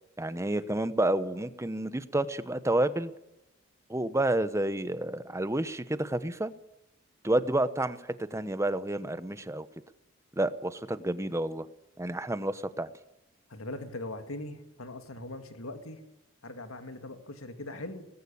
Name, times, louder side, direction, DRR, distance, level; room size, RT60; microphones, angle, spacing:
voice 1, 0.2-3.1 3.9-6.5 7.2-9.7 10.4-11.7 12.0-12.9, right 1 dB, 15° right, 13 dB, 1.0 m, -29 dB
voice 2, 13.5-16.0 16.4-18.1, left 2 dB, 90° left, 7 dB, 2.2 m, -40 dB
19.5 x 15.5 x 8.7 m, 0.89 s
head